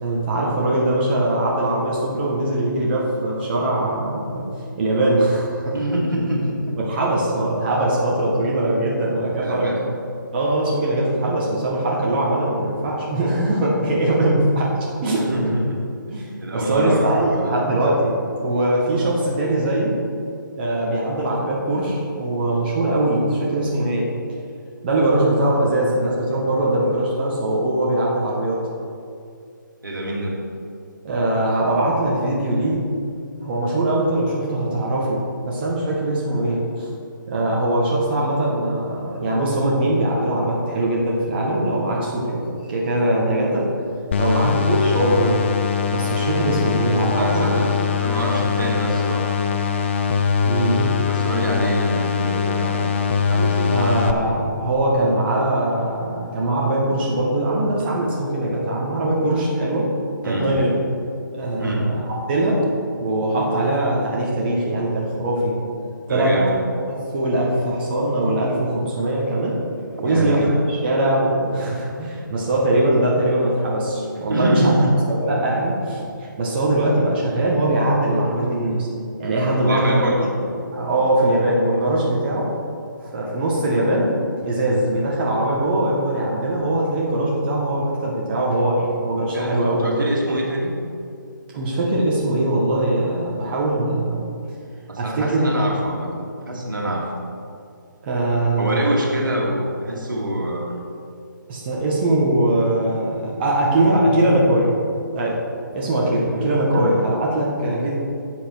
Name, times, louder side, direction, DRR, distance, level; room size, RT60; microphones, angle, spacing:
voice 1, 0.0-4.5 4.8-5.8 6.8-9.7 10.3-14.7 15.0-15.5 16.1-18.1 18.4-19.9 20.5-24.0 24.8-28.6 31.0-32.9 33.4-36.9 37.3-42.4 42.7-43.7 44.2-45.5 45.9-47.6 50.4-51.1 53.7-59.9 60.2-60.8 61.3-62.0 62.3-62.6 63.0-65.6 66.1-66.4 66.9-69.6 70.0-70.5 70.8-74.7 75.1-76.0 76.4-78.9 79.2-80.0 80.4-82.5 83.0-84.1 84.4-89.8 91.5-94.2 95.0-95.4 98.0-99.0 101.5-104.7 105.1-105.4 105.7-107.9, right 1 dB, 30° right, -4 dB, 1.7 m, -21 dB
voice 2, 5.7-6.8 9.4-9.8 15.2-15.8 16.4-17.5 29.8-30.4 44.2-44.5 47.2-47.7 48.0-49.3 51.1-52.9 53.3-53.7 60.2-60.5 61.6-61.8 66.1-66.6 70.0-70.6 74.3-74.9 79.6-80.3 89.3-90.7 94.9-97.1 98.6-100.8, right 1 dB, 75° right, -2 dB, 2.5 m, -25 dB
sound 1, 44.1-54.1, left 7 dB, 35° left, 0.7 m, -22 dB
11.5 x 7.8 x 4.7 m, 2.4 s
figure-of-eight pair, 145°, 11 cm